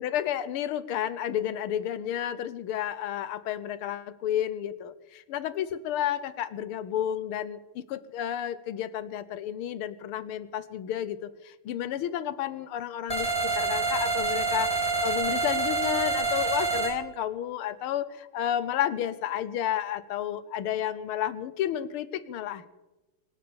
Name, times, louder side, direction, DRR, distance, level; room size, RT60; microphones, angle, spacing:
voice 1, 0.0-22.7, left 10 dB, 80° left, 14 dB, 1.7 m, -31 dB
sound 1, 13.1-16.9, right 4 dB, 15° left, 3.1 m, -27 dB
23.5 x 8.8 x 6.9 m, 1.1 s
omnidirectional pair, 2.4 m